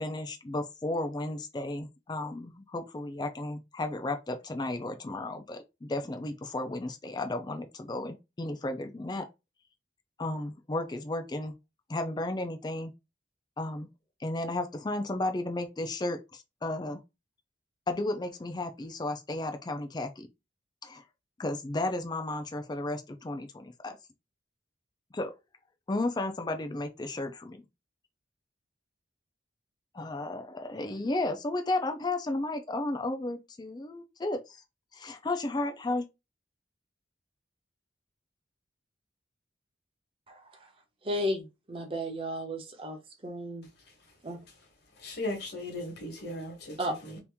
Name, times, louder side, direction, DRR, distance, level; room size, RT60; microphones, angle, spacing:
voice 1, 0.0-9.3 10.2-11.5 11.9-12.9 13.6-13.9 14.2-17.0 17.9-20.3 20.8-21.0 21.4-24.0 25.1-25.3 25.9-27.6 29.9-34.6 34.9-36.1, left 2 dB, 20° left, 0.4 m, -33 dB
voice 2, 40.3-40.7 41.0-43.7 44.2-44.4 46.8-46.9, equal, 30° right, 0.8 m, -34 dB
voice 3, 45.0-47.2, left 1 dB, 60° left, 1.3 m, -37 dB
2.9 x 2.5 x 3.4 m
head